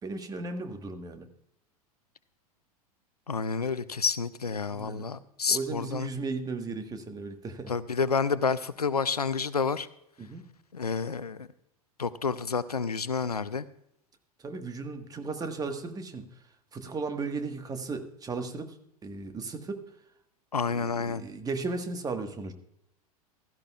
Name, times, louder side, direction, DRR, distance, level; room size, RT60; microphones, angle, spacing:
voice 1, 0.0-1.3 4.7-5.1 5.5-7.7 10.2-10.4 14.4-16.3 16.7-18.7 19.0-19.8 20.7-22.5, right 4 dB, 20° right, 6 dB, 1.4 m, -35 dB
voice 2, 3.3-6.1 7.7-9.9 10.7-11.5 12.0-13.7 20.5-21.2, left 5 dB, 85° left, 17 dB, 0.5 m, -29 dB
16.0 x 13.5 x 2.3 m, 0.76 s
figure-of-eight pair, 85°, 19 cm